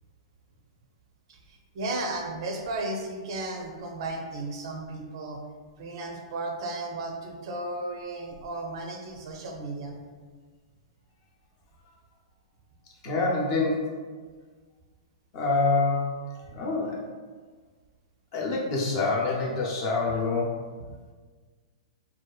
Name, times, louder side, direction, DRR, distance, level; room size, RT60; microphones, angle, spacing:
voice 1, 1.3-5.4 5.8-9.9, right 2 dB, 60° right, 2 dB, 0.5 m, -34 dB
voice 2, 13.0-13.9 15.3-17.0 18.3-20.6, left 3 dB, 50° left, -3 dB, 0.7 m, -26 dB
2.6 x 2.3 x 2.3 m, 1.5 s
hypercardioid pair, 135°, 3 cm